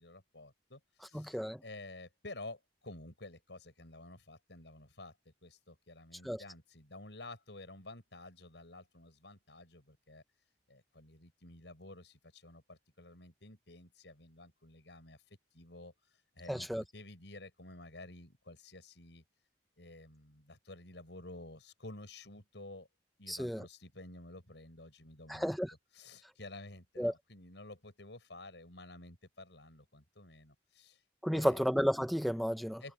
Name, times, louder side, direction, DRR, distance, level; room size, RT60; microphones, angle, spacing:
voice 1, 0.0-10.2 10.7-16.7 16.9-19.2 19.8-22.9 23.2-25.6 25.9-31.0 31.3-31.7 32.8-32.9, left 2 dB, 80° left, 6.6 m, -51 dB
voice 2, 1.1-1.6 6.2-6.4 16.5-16.8 23.3-23.6 25.3-25.7 27.0-27.1 31.2-32.8, equal, ahead, 0.8 m, -32 dB
head